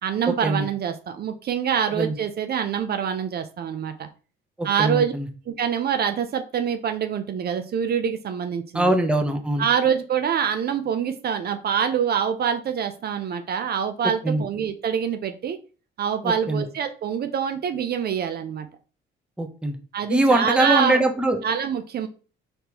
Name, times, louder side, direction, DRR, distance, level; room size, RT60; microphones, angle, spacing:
voice 1, 0.0-4.1 4.6-5.1 5.5-8.9 9.6-15.6 16.0-18.7 19.9-21.0 21.4-22.1, right 8 dB, 50° right, 8 dB, 0.5 m, -25 dB
voice 2, 4.6-5.3 8.7-9.6 14.0-14.4 16.2-16.6 19.4-19.8 20.1-21.4, right 1 dB, 5° right, 4 dB, 0.7 m, -22 dB
4.2 x 3.4 x 2.9 m, 0.37 s
cardioid pair, 90°, 20 cm